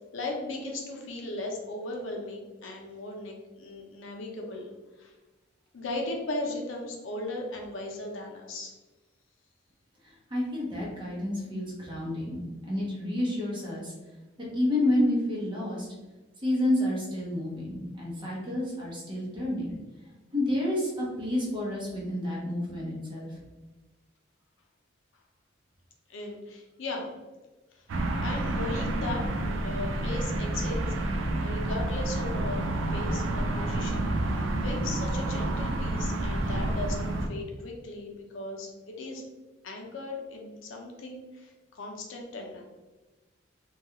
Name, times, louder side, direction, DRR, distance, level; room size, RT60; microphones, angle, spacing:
voice 1, 0.1-4.7 5.0-5.1 5.7-8.7 26.1-27.1 27.7-27.9 28.2-32.6 32.9-39.2 39.6-42.6, left 2 dB, 80° left, 1 dB, 0.5 m, -37 dB
voice 2, 10.0-13.9 14.4-15.9 16.4-19.7 20.3-23.4, left 1 dB, 25° right, -4 dB, 0.7 m, -29 dB
sound 1, 27.9-37.3, right 1 dB, 75° right, 0.4 m, -29 dB
2.3 x 2.3 x 2.8 m, 1.2 s
head